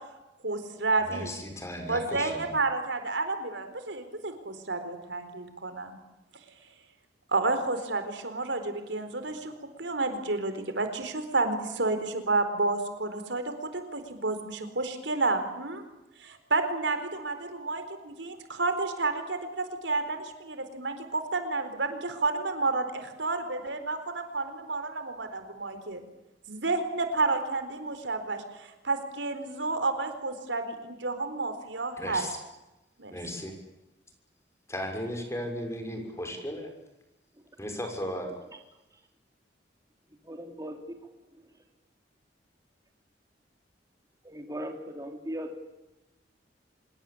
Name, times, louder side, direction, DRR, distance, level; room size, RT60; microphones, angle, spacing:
voice 1, 0.4-1.3 1.9-6.0 7.3-15.8 16.2-26.0 26.5-32.3 33.0-33.1, right 3 dB, 85° right, 8 dB, 4.2 m, -30 dB
voice 2, 1.1-2.5 32.0-32.4 33.1-33.5 34.7-36.7 37.6-38.3, equal, 15° left, 4 dB, 6.4 m, -35 dB
voice 3, 40.3-40.8 44.3-45.5, right 1 dB, 20° right, 4 dB, 3.5 m, -38 dB
26.0 x 22.0 x 8.7 m, 0.98 s
head